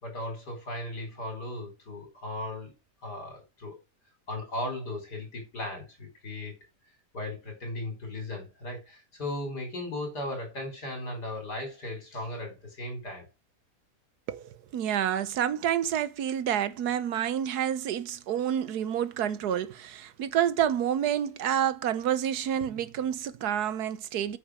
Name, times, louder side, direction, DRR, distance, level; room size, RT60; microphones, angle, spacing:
voice 1, 0.0-2.7 3.0-3.8 4.3-6.5 7.1-13.2, left 1 dB, 80° left, 5.0 m, -37 dB
voice 2, 14.3-24.4, right 10 dB, 75° right, 1.3 m, -28 dB
8.8 x 6.7 x 4.9 m
omnidirectional pair, 1.7 m